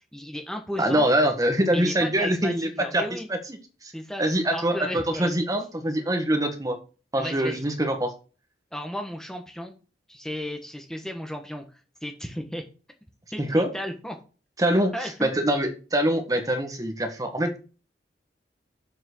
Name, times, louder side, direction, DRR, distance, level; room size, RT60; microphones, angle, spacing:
voice 1, 0.0-1.1 1.7-3.3 3.9-4.2 4.5-5.3 7.2-7.6 8.7-9.7 10.1-11.6 12.0-12.6 13.3-14.2 14.9-15.3, equal, 5° left, 3 dB, 1.3 m, -34 dB
voice 2, 0.8-3.4 3.8-3.9 4.2-6.8 7.1-8.1 13.4-13.7 14.6-14.9 15.2-17.6, right 1 dB, 20° right, 5 dB, 1.6 m, -24 dB
7.5 x 6.1 x 6.2 m, 0.34 s
head